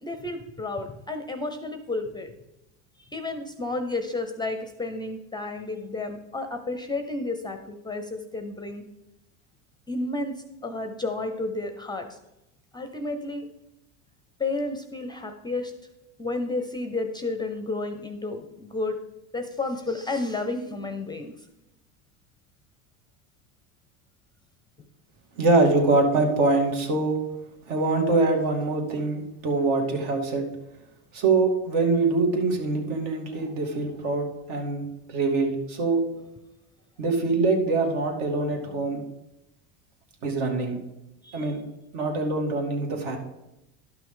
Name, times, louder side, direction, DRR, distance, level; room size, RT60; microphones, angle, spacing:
voice 1, 0.0-2.3 3.0-8.8 9.9-10.3 10.6-12.2 12.7-13.5 14.4-15.7 16.2-19.0 19.3-21.3 41.2-41.5, left 2 dB, 10° left, 7 dB, 0.5 m, -31 dB
voice 2, 25.4-27.2 27.7-30.5 31.1-36.0 37.0-39.0 40.2-40.8 41.3-41.6 41.9-43.2, right 3 dB, 65° right, 2 dB, 2.4 m, -24 dB
11.5 x 6.0 x 3.8 m, 0.91 s
supercardioid pair, 135°, 41 cm